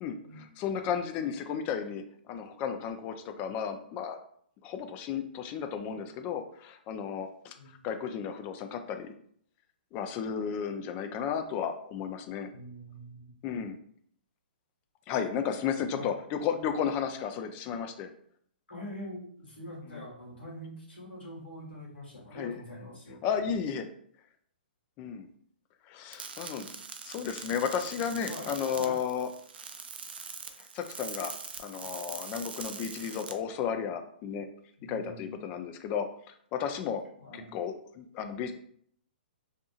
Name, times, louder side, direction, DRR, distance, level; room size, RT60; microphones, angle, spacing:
voice 1, 0.0-4.2 4.6-7.5 7.8-9.1 9.9-12.5 13.4-13.8 15.1-18.1 19.9-20.0 22.3-22.6 23.2-23.9 25.0-25.3 25.9-26.7 27.0-29.3 30.6-31.3 31.6-34.5 34.9-37.0 37.3-38.5, left 7 dB, 30° left, 7 dB, 0.3 m, -33 dB
voice 2, 12.5-13.4 15.9-16.1 18.7-23.2 28.2-29.0 34.8-35.4 37.2-37.6, left 1 dB, 85° left, -3 dB, 1.4 m, -44 dB
sound 1, 26.1-33.3, right 5 dB, 75° right, 0.4 m, -43 dB
2.7 x 2.6 x 2.4 m, 0.63 s
hypercardioid pair, 130°, 6 cm